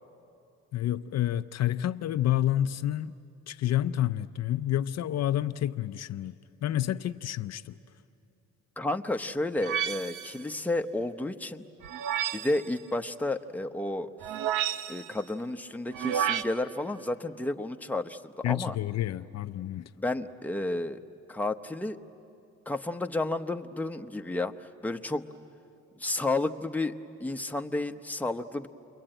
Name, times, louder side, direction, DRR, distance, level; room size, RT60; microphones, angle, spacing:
voice 1, 0.7-3.1 3.5-6.3 6.6-7.7 18.4-19.9, left 12 dB, 60° left, 0.6 m, -29 dB
voice 2, 8.8-11.6 12.3-14.1 14.9-18.8 20.0-21.0 21.3-22.0 22.7-25.3 26.0-28.7, left 2 dB, 5° left, 0.9 m, -31 dB
sound 1, 9.6-10.4 11.8-12.6 14.2-15.1 15.9-16.4, right 9 dB, 85° right, 0.8 m, -30 dB
29.5 x 22.5 x 8.9 m
cardioid pair, 90°, 30 cm